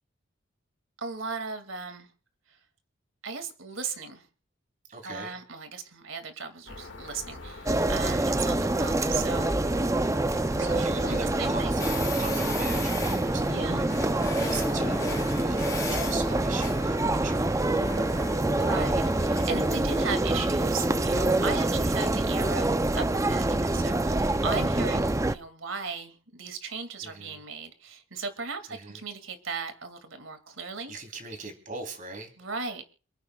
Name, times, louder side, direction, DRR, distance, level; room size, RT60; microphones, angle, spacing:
voice 1, 1.0-2.1 3.2-4.3 5.0-9.6 10.4-11.8 13.4-13.9 14.4-14.6 17.4-17.8 18.6-30.9 32.4-32.8, right 4 dB, 90° right, 8 dB, 2.3 m, -37 dB
voice 2, 4.9-5.4 10.6-14.1 14.5-18.3 27.0-27.4 28.7-29.0 30.9-32.3, right 4 dB, 40° right, 4 dB, 3.4 m, -41 dB
sound 1, 6.7-17.0, left 2 dB, 70° left, 1.9 m, -43 dB
sound 2, 7.7-25.3, right 2 dB, 15° right, 0.5 m, -26 dB
sound 3, 11.8-20.2, left 3 dB, 15° left, 2.3 m, -38 dB
28.5 x 9.8 x 2.3 m, 0.40 s
head